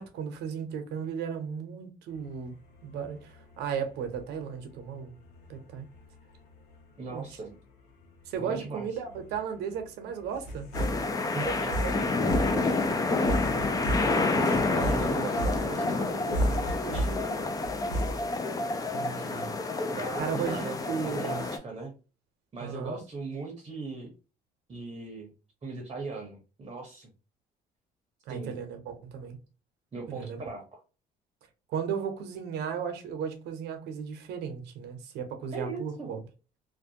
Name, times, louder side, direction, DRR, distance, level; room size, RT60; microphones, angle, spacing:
voice 1, 0.0-2.6 2.8-5.1 5.5-5.9 7.1-7.5 8.3-10.7 13.4-13.8 18.9-19.5 20.2-21.4 22.6-23.0 28.3-29.4 30.1-30.4 31.7-36.2, right 7 dB, 80° right, 0.7 m, -35 dB
sound 1, 2.1-18.4, right 1 dB, 85° left, 0.8 m, -36 dB
voice 2, 7.0-7.5 8.4-8.9 11.3-12.7 13.9-17.5 19.9-21.9 22.5-24.1 24.7-25.3 25.6-27.1 28.3-28.5 29.9-30.8 35.5-36.1, right 3 dB, 30° right, 0.7 m, -39 dB
sound 2, 10.7-21.6, left 3 dB, 20° left, 0.3 m, -29 dB
2.5 x 2.2 x 2.6 m
cardioid pair, 110°, 17 cm